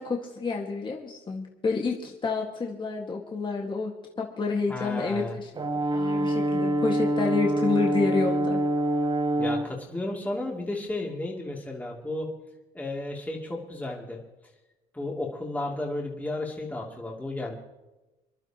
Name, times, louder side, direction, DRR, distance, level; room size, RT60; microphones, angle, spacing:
voice 1, 0.0-5.5 5.9-8.6, left 4 dB, 30° left, 0 dB, 1.9 m, -29 dB
voice 2, 4.7-5.3 9.4-12.3 12.7-14.2 14.9-17.6, left 2 dB, 10° left, -2 dB, 2.8 m, -33 dB
Brass instrument, 5.6-9.7, right 1 dB, 30° right, 1.3 m, -25 dB
27.5 x 11.5 x 3.0 m, 1.0 s
cardioid pair, 110°, 17 cm